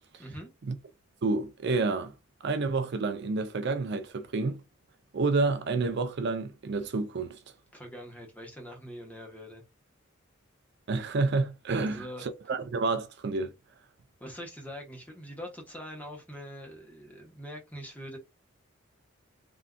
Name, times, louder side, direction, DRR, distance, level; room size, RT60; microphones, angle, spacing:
voice 1, 1.2-2.1 2.4-4.6 5.1-7.4 10.9-13.5, right 3 dB, 55° right, 0.5 m, -29 dB
voice 2, 7.7-9.6 11.8-12.3 14.2-18.2, equal, 10° left, 0.9 m, -43 dB
3.6 x 2.6 x 2.2 m
head